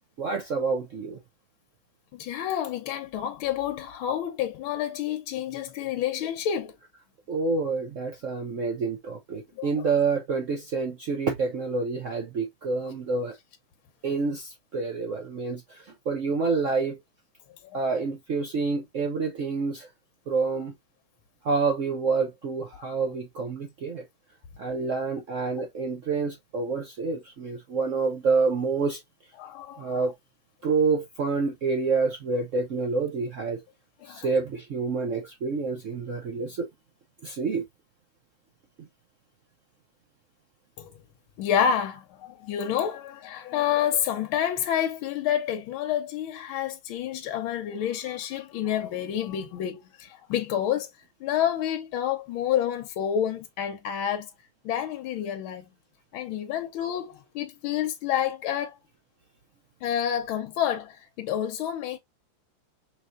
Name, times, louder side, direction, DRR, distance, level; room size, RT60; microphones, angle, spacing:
voice 1, 0.2-1.2 7.3-13.3 14.0-17.0 17.7-19.9 20.3-20.7 21.4-24.0 24.6-29.0 29.8-30.1 30.6-33.6 34.1-36.7 37.2-37.6, right 4 dB, 65° right, 0.7 m, -28 dB
voice 2, 2.1-6.7 9.6-9.8 22.8-22.9 29.4-30.1 34.0-34.3 40.8-40.9 41.4-50.9 51.2-54.3 54.6-55.6 56.1-58.8 59.8-62.0, left 9 dB, 75° left, 1.5 m, -29 dB
5.3 x 3.3 x 2.5 m
omnidirectional pair, 2.3 m